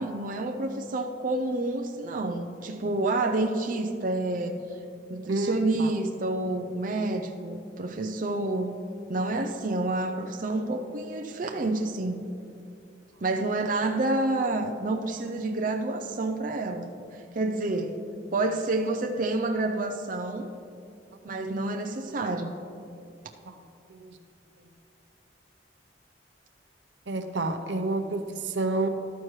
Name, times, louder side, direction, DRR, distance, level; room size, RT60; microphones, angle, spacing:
voice 1, 0.0-4.6 5.1-8.8 9.1-12.2 13.2-16.9 17.3-18.0 18.3-20.5 21.2-22.6, right 2 dB, 50° right, 3 dB, 0.6 m, -28 dB
voice 2, 5.3-5.9 23.5-23.6 23.9-24.2 27.1-28.9, right 2 dB, 85° right, 7 dB, 0.8 m, -29 dB
13.5 x 12.0 x 3.2 m, 2.6 s
head